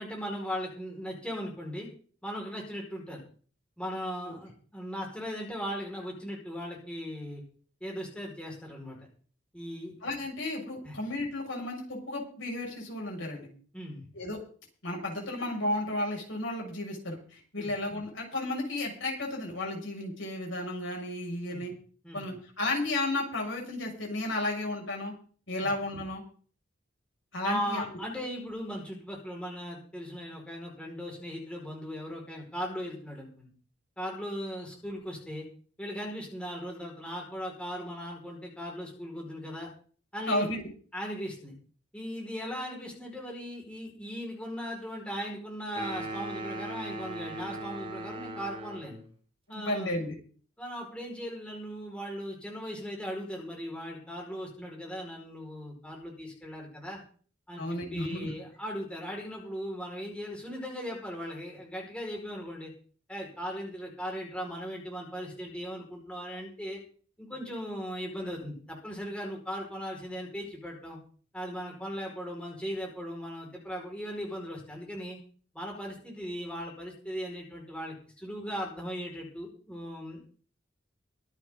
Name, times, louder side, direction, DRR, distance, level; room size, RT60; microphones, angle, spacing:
voice 1, 0.0-1.9 2.2-3.2 3.8-7.4 7.8-9.0 9.5-9.9 10.8-10.9 13.7-14.0 17.6-17.7 21.4-21.7 22.0-22.4 25.6-25.7 27.4-33.5 34.0-35.4 35.8-39.7 40.1-40.5 40.9-41.5 41.9-49.0 49.5-49.9 50.6-57.0 57.5-62.7 63.1-66.8 67.2-71.0 71.3-75.2 75.5-80.2, equal, 5° left, -1 dB, 5.2 m, -38 dB
voice 2, 10.0-13.5 14.1-14.4 14.8-21.7 22.1-25.1 25.5-26.2 27.3-28.0 40.3-40.7 49.5-50.1 57.6-58.3, left 1 dB, 75° left, -1 dB, 6.5 m, -33 dB
sound 1, 45.7-49.1, right 1 dB, 30° right, 2.9 m, -39 dB
24.0 x 9.3 x 3.9 m, 0.43 s
head